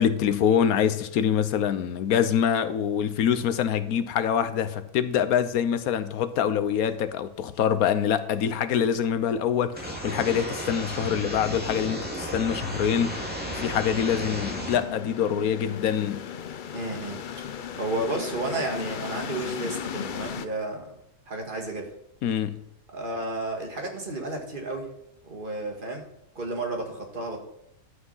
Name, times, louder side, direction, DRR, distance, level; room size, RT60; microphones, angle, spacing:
voice 1, 0.0-16.3 22.2-22.6, left 8 dB, 80° left, 1.2 m, -25 dB
sound 1, 9.8-14.8, equal, 5° right, 2.2 m, -33 dB
sound 2, 13.5-20.5, left 8 dB, 60° left, 0.5 m, -36 dB
voice 2, 16.7-17.2 17.8-21.0 21.3-21.9 22.9-24.9 25.3-26.1 26.4-27.4, right 2 dB, 35° right, 2.0 m, -32 dB
11.5 x 6.1 x 5.5 m
omnidirectional pair, 1.5 m